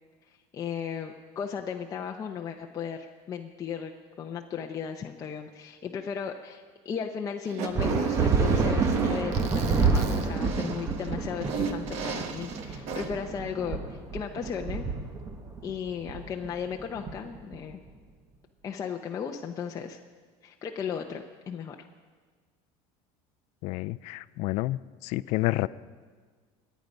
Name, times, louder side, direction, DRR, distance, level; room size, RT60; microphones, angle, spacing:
voice 1, 0.5-3.9 4.2-14.9 15.6-17.8 18.6-20.0 20.4-21.8, left 7 dB, 25° left, 2 dB, 0.7 m, -36 dB
Fart, 7.4-13.2, right 6 dB, 55° right, 1.4 m, -34 dB
sound 1, 7.8-17.7, right 4 dB, 20° right, 1.1 m, -28 dB
voice 2, 23.6-25.7, left 19 dB, 60° left, 17 dB, 0.4 m, -29 dB
24.5 x 9.3 x 5.3 m, 1.5 s
cardioid pair, 150°, 13 cm